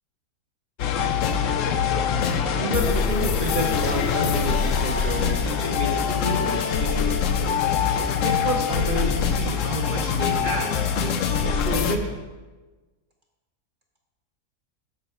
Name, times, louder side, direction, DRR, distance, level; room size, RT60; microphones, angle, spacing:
sound 1, 0.8-12.0, left 6 dB, 65° left, 0.9 m, -23 dB
voice 1, 2.5-7.3 7.9-12.2, right 1 dB, 50° right, 1 dB, 0.6 m, -30 dB
7.1 x 5.5 x 4.3 m, 1.3 s
omnidirectional pair, 1.6 m